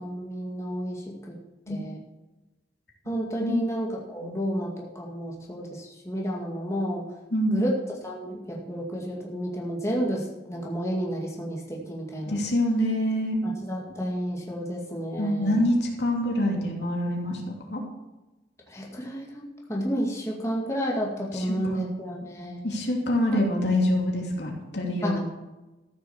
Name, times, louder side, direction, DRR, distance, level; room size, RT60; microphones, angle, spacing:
voice 1, 0.0-1.3 1.7-2.0 3.1-7.0 7.5-7.8 8.0-12.4 13.4-15.6 18.7-22.6 25.0-25.2, equal, 15° left, -3 dB, 2.1 m, -31 dB
voice 2, 12.3-13.4 15.2-17.8 21.3-21.9 22.6-25.2, left 1 dB, 80° left, 0 dB, 2.8 m, -26 dB
14.0 x 6.8 x 7.1 m, 1.1 s
head